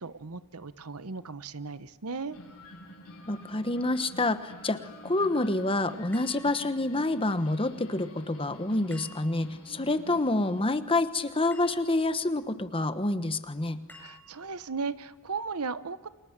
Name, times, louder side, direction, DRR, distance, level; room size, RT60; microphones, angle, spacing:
voice 1, 0.0-2.4 14.0-16.1, right 4 dB, 90° right, 14 dB, 1.1 m, -36 dB
sound 1, 2.3-10.6, left 1 dB, 75° left, 7.9 m, -48 dB
voice 2, 3.3-13.8, left 2 dB, 25° left, 11 dB, 1.3 m, -28 dB
sound 2, 6.1-7.1 8.9-9.7 11.5-12.2 13.9-14.7, left 2 dB, 10° left, 6.3 m, -52 dB
30.0 x 26.5 x 7.4 m, 1.3 s
head